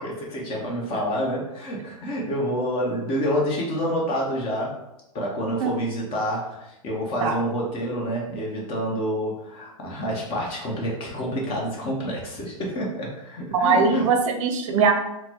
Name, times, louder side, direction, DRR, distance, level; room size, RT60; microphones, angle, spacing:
voice 1, 0.0-4.8 5.1-14.1, equal, 30° left, -2 dB, 0.9 m, -28 dB
voice 2, 13.5-14.9, right 5 dB, 60° right, 5 dB, 0.5 m, -21 dB
4.0 x 2.1 x 2.9 m, 0.89 s
hypercardioid pair, 120°, 18 cm